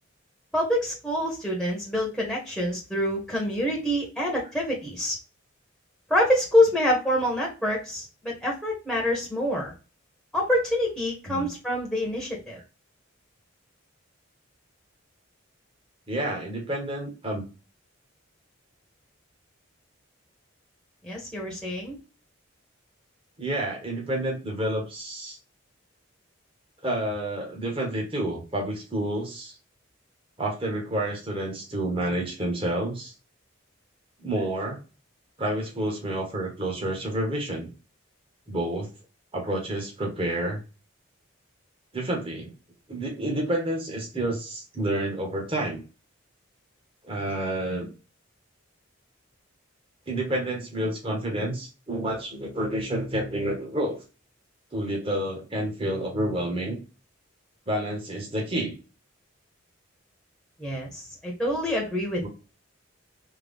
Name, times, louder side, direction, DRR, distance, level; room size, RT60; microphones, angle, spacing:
voice 1, 0.5-5.2 6.1-9.7 10.3-12.6 21.0-22.0 60.6-62.3, left 1 dB, ahead, -3 dB, 0.9 m, -26 dB
voice 2, 16.1-17.4 23.4-25.4 26.8-29.6 30.4-33.1 34.2-34.8 35.4-37.7 38.5-38.9 39.3-40.6 41.9-42.5 42.9-45.8 47.0-47.9 50.1-54.0 54.7-56.8 57.7-58.7 62.2-62.3, right 1 dB, 25° right, 0 dB, 1.0 m, -29 dB
3.6 x 2.3 x 3.4 m, 0.32 s
head